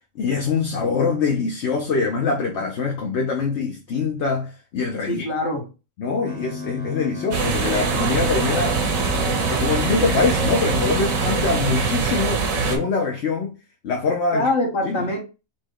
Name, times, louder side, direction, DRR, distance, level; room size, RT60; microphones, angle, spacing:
voice 1, 0.2-5.3 6.0-8.8 9.4-13.6 13.8-14.5 14.9-15.0, left 4 dB, 60° left, 1.0 m, -24 dB
voice 2, 5.1-5.7 14.3-15.2, left 1 dB, 40° left, 1.4 m, -23 dB
sound 1, 6.2-12.1, left 4 dB, 10° left, 0.7 m, -34 dB
sound 2, 7.3-12.8, right 5 dB, 85° right, 1.4 m, -23 dB
4.5 x 2.2 x 4.6 m
omnidirectional pair, 1.4 m